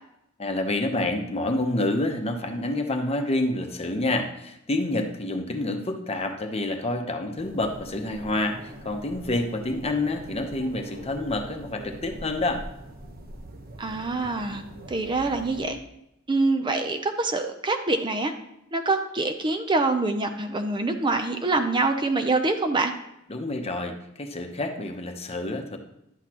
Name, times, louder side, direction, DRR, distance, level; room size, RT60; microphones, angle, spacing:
voice 1, 0.4-12.6 23.3-25.8, left 2 dB, 30° left, 4 dB, 0.9 m, -28 dB
sound 1, 7.4-15.7, right 1 dB, 50° right, 1.0 m, -43 dB
voice 2, 13.8-14.6 14.9-15.8 16.3-18.3 18.7-22.9, right 3 dB, 25° right, 6 dB, 0.5 m, -25 dB
11.5 x 8.1 x 3.0 m, 0.82 s
head